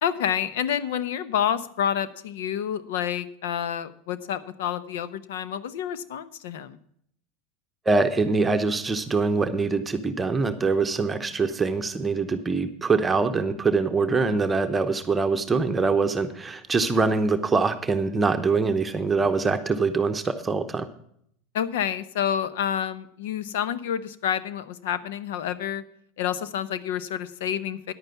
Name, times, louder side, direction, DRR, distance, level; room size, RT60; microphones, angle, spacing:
voice 1, 0.0-6.8 14.3-14.4 21.5-25.8 26.2-27.9, left 9 dB, 80° left, 15 dB, 0.8 m, -28 dB
voice 2, 7.9-20.9, right 4 dB, 15° right, 7 dB, 0.9 m, -24 dB
10.5 x 9.0 x 5.7 m, 0.68 s
supercardioid pair, 110°, 0 cm